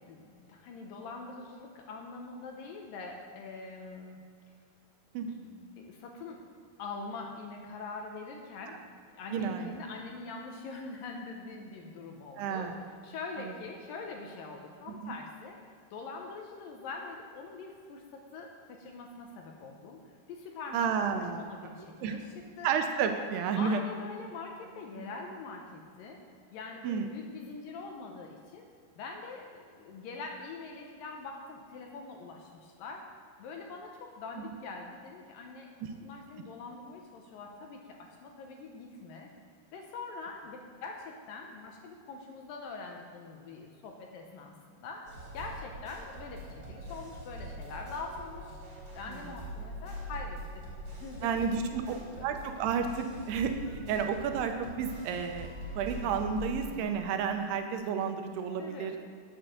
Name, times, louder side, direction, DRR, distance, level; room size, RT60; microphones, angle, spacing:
voice 1, 0.0-4.3 5.2-6.4 6.8-20.9 21.2-22.7 23.6-26.2 26.5-28.7 29.0-33.1 33.4-39.3 39.7-45.1 45.3-48.6 48.9-50.6 51.0-52.3 53.9-54.1 58.6-58.9, left 4 dB, 75° left, 2 dB, 2.3 m, -44 dB
voice 2, 9.3-9.7 12.4-12.8 13.4-13.5 15.0-15.1 20.7-21.5 22.0-22.2 22.6-23.8 25.0-25.1 26.8-27.1 34.4-34.5 49.1-49.2 51.2-58.9, right 6 dB, 90° right, 6 dB, 2.8 m, -31 dB
sound 1, 45.1-56.8, right 1 dB, 40° right, 3.3 m, -43 dB
9.1 x 7.8 x 6.5 m, 2.2 s
omnidirectional pair, 4.7 m